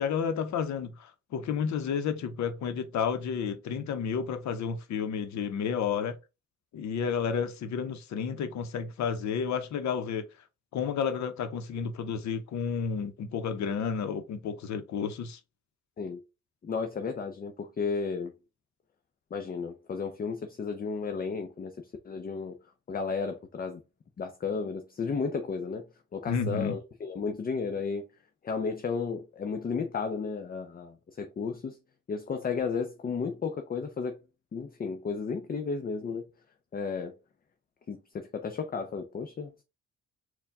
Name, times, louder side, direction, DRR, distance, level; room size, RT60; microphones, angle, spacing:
voice 1, 0.0-6.2 6.7-10.3 10.7-15.4 26.3-26.7, left 6 dB, 65° left, 0.8 m, -31 dB
voice 2, 16.6-18.3 19.3-21.7 22.0-22.6 22.9-23.8 24.2-25.8 26.1-28.0 28.4-31.8 32.1-34.2 34.5-36.2 36.7-37.1 37.9-39.6, left 5 dB, 30° left, 0.6 m, -33 dB
4.3 x 2.3 x 3.5 m
cardioid pair, 90°, 30 cm